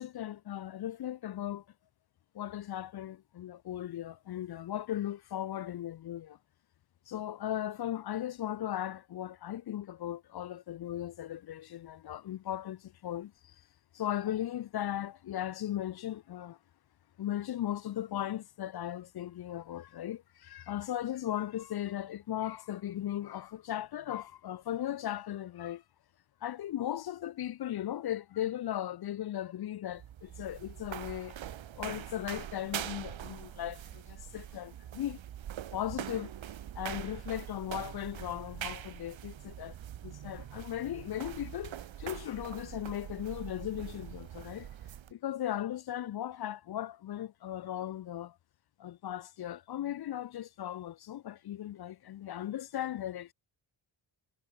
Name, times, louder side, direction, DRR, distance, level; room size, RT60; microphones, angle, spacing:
voice 1, 0.0-1.6 2.3-6.4 7.1-13.6 13.9-16.6 17.2-25.8 26.4-31.4 31.8-35.2 35.7-36.3 36.7-39.7 40.0-44.7 45.1-48.4 48.8-53.3, left 12 dB, 50° left, 0.6 m, -37 dB
sound 1, 29.8-45.1, right 11 dB, 65° right, 1.9 m, -43 dB
cardioid pair, 100°, 49 cm